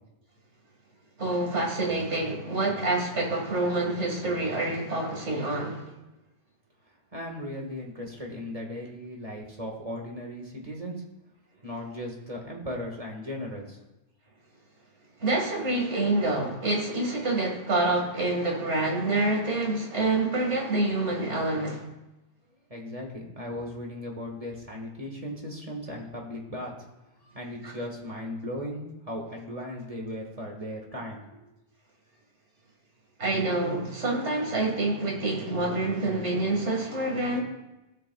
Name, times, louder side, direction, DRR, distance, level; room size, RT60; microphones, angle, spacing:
voice 1, 1.2-5.9 15.2-21.9 27.6-27.7 33.2-37.4, right 2 dB, 80° right, 0 dB, 2.3 m, -27 dB
voice 2, 7.1-11.0 11.6-13.8 22.7-26.9 27.2-31.2, left 1 dB, 30° right, 0 dB, 1.8 m, -37 dB
17.0 x 6.6 x 2.4 m, 0.99 s
omnidirectional pair, 1.2 m